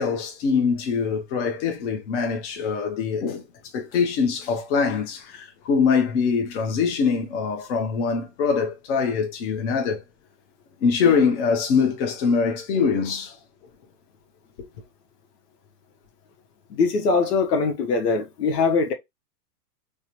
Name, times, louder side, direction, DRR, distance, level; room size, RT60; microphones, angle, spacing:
voice 1, 0.0-3.4 3.7-10.0 10.8-13.4, left 5 dB, 45° left, 1.0 m, -23 dB
voice 2, 16.7-18.9, left 4 dB, 75° left, 1.2 m, -22 dB
3.5 x 2.2 x 3.0 m
hypercardioid pair, 150°, 48 cm